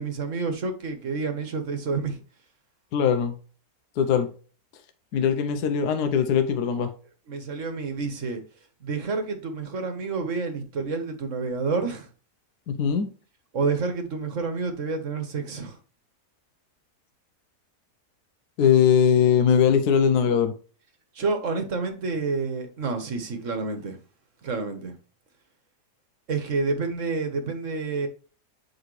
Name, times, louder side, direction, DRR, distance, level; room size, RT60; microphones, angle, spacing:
voice 1, 0.0-2.2 7.3-8.4 8.8-12.1 13.5-15.8 21.1-24.0 24.4-25.0 26.3-28.1, right 4 dB, 50° right, 1.5 m, -29 dB
voice 2, 2.9-3.4 4.0-4.3 5.1-6.9 12.7-13.1 18.6-20.5, left 7 dB, 75° left, 1.3 m, -21 dB
7.7 x 5.0 x 3.1 m
omnidirectional pair, 1.7 m